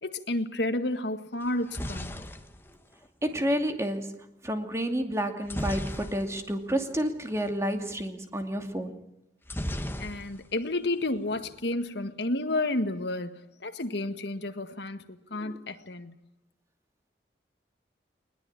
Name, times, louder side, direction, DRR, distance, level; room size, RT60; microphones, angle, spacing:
voice 1, 0.0-2.2 10.0-16.1, left 2 dB, 70° left, 1.8 m, -31 dB
sound 1, 1.4-3.5 5.5-6.6 6.9-7.1 7.3-7.5 9.5-10.6 10.9-11.5, equal, 10° left, 1.5 m, -36 dB
voice 2, 3.2-4.2 4.4-9.0 15.4-15.6, equal, 15° right, 2.5 m, -30 dB
21.0 x 21.0 x 8.9 m
head